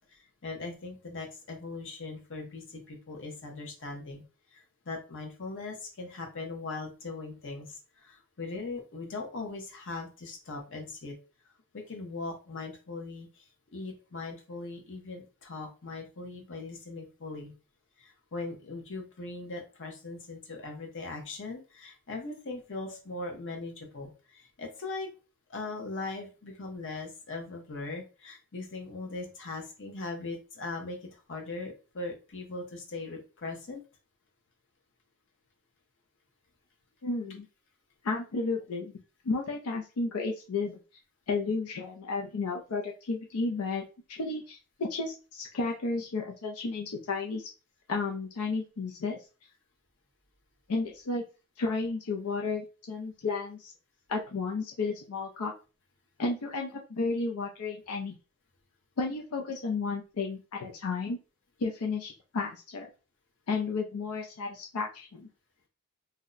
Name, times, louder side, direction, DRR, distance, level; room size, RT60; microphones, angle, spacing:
voice 1, 0.1-4.2 4.5-11.1 11.7-17.5 18.0-25.1 25.5-33.8, left 3 dB, 60° left, 2 dB, 0.9 m, -40 dB
voice 2, 37.0-37.5 38.0-38.9 39.2-40.8 41.3-43.8 44.1-47.5 47.9-49.2 50.7-51.2 51.6-53.7 54.1-55.5 56.2-58.2 59.0-61.2 61.6-62.9 63.5-65.3, left 3 dB, 80° left, 1 dB, 0.5 m, -32 dB
2.7 x 2.1 x 3.8 m, 0.33 s
head